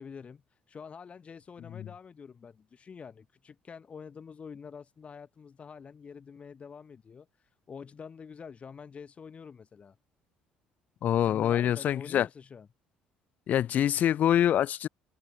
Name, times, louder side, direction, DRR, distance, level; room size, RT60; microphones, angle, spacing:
voice 1, 0.0-10.0 11.2-12.7, left 6 dB, 40° left, 3.1 m, -46 dB
voice 2, 11.0-12.3 13.5-14.9, left 10 dB, 55° left, 0.4 m, -25 dB
open air
supercardioid pair, 70°, 3 cm